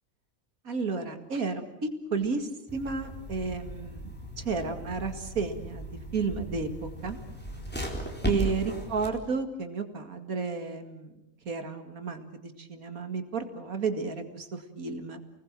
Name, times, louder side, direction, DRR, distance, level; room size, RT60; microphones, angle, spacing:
voice 1, 0.6-7.2 8.3-11.1 11.5-15.2, right 4 dB, 65° right, 7 dB, 2.5 m, -32 dB
sound 1, 2.7-9.1, right 1 dB, 5° left, 4.2 m, -36 dB
29.5 x 19.5 x 7.5 m, 0.93 s
omnidirectional pair, 1.6 m